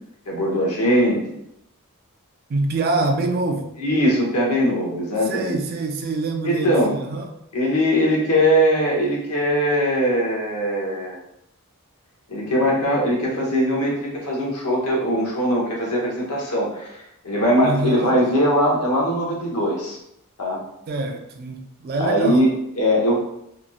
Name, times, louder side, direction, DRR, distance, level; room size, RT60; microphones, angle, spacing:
voice 1, 0.3-1.2 3.8-5.6 6.4-6.9 7.5-11.2 12.3-17.0 17.2-20.0 20.4-20.6 22.0-23.1, equal, 85° left, -2 dB, 0.9 m, -21 dB
voice 2, 2.5-3.7 5.2-7.3 17.6-18.1 20.9-22.5, right 2 dB, 45° right, 4 dB, 0.3 m, -25 dB
2.9 x 2.5 x 2.3 m, 0.77 s
head